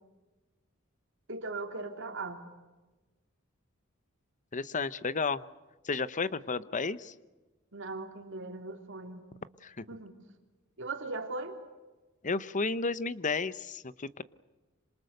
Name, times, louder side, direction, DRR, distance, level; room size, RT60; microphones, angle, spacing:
voice 1, 1.3-2.4 7.7-9.2 9.9-10.1 10.8-11.6, right 3 dB, 65° right, 4 dB, 3.5 m, -38 dB
voice 2, 4.5-5.4 5.8-7.1 9.6-9.8 12.2-14.2, left 4 dB, 40° left, 16 dB, 0.9 m, -32 dB
27.0 x 26.5 x 6.7 m, 1.2 s
head